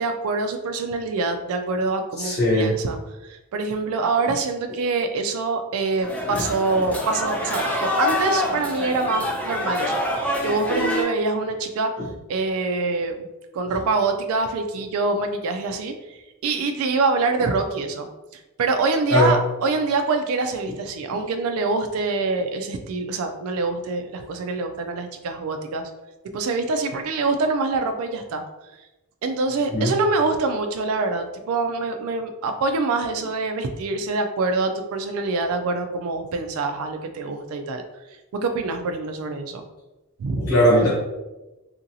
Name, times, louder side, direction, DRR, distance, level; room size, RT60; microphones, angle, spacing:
voice 1, 0.0-3.0 3.2-13.2 13.5-18.1 18.6-25.9 26.3-28.4 29.2-37.8 38.4-39.6 40.2-40.5, right 3 dB, 70° right, 6 dB, 0.3 m, -25 dB
voice 2, 2.2-2.7 6.3-6.4 6.7-6.8 12.0-12.1 19.1-19.3 29.7-29.9 40.4-40.9, equal, 60° left, -8 dB, 0.8 m, -19 dB
sound 1, 6.0-11.0, left 1 dB, 5° left, 0.4 m, -26 dB
2.8 x 2.7 x 2.6 m, 1.0 s
head